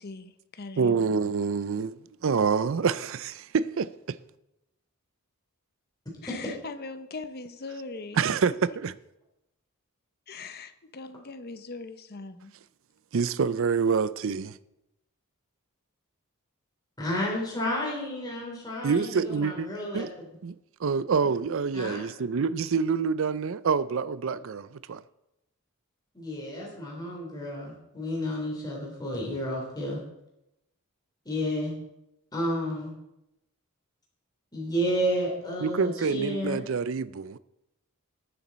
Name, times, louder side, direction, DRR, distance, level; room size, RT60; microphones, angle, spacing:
voice 1, 0.0-1.2 6.2-8.4 10.3-12.5, left 3 dB, 45° left, 0.8 m, -41 dB
voice 2, 0.8-4.2 8.2-9.0 13.1-14.6 18.8-19.7 19.9-20.1 20.4-20.5 20.8-25.0 35.6-37.4, right 5 dB, 60° right, 0.5 m, -27 dB
voice 3, 17.0-20.1 21.7-22.0 26.1-30.0 31.3-31.7 32.3-32.9 34.5-36.6, equal, 20° left, 3.5 m, -31 dB
19.5 x 7.0 x 4.2 m
head